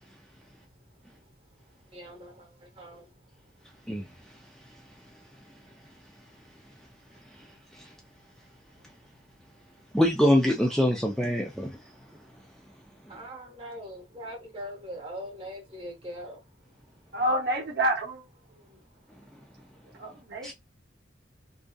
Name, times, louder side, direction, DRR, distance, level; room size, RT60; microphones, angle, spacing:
voice 1, 0.3-0.7 1.0-4.3 4.6-6.5 7.1-10.0 11.9-16.8 18.5-20.5, equal, 30° right, 0.9 m, -46 dB
voice 2, 9.9-11.8 20.4-20.5, equal, ahead, 0.3 m, -24 dB
voice 3, 17.1-18.2 20.0-20.5, right 1 dB, 60° right, 0.7 m, -28 dB
2.6 x 2.3 x 2.2 m
head